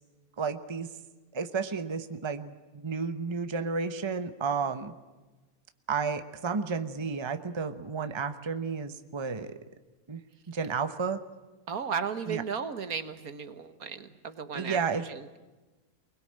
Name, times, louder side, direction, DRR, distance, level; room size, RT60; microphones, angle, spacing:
voice 1, 0.4-0.9 1.3-4.9 5.9-9.6 10.1-10.2 10.5-11.2 12.3-12.4 14.5-15.0, right 5 dB, 20° right, 10 dB, 0.9 m, -32 dB
voice 2, 11.7-15.4, right 6 dB, 75° right, 10 dB, 1.8 m, -35 dB
23.5 x 21.0 x 8.8 m, 1.2 s
omnidirectional pair, 1.6 m